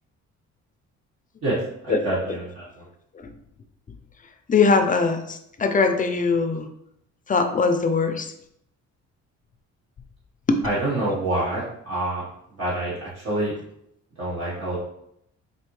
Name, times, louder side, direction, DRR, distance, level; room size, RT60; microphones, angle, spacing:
voice 1, 1.8-2.6 10.6-12.2 12.6-13.5 14.2-14.8, right 1 dB, 55° right, -9 dB, 1.4 m, -26 dB
voice 2, 4.5-6.7 7.3-8.3 10.5-10.6 11.1-11.2, left 4 dB, 25° left, 6 dB, 0.5 m, -21 dB
4.2 x 2.7 x 3.1 m, 0.76 s
cardioid pair, 90°, 30 cm